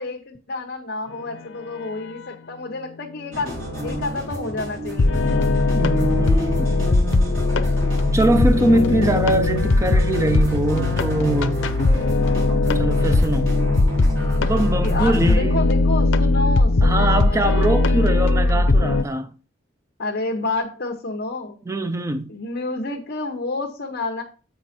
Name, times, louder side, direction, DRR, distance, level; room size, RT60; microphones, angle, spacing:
voice 1, 0.0-3.6 3.8-5.2 14.8-17.7 20.0-21.6 22.3-24.2, left 2 dB, 50° left, 0.9 m, -29 dB
sound 1, 3.3-15.3, equal, 75° right, 4.5 m, -29 dB
sound 2, 3.5-4.1 5.0-19.0, left 2 dB, 75° left, 0.7 m, -19 dB
voice 2, 5.7-6.8 8.1-11.6 12.7-13.5 14.4-15.6 16.8-19.3 21.7-22.3, right 1 dB, 15° right, 0.4 m, -22 dB
7.6 x 5.1 x 4.3 m
head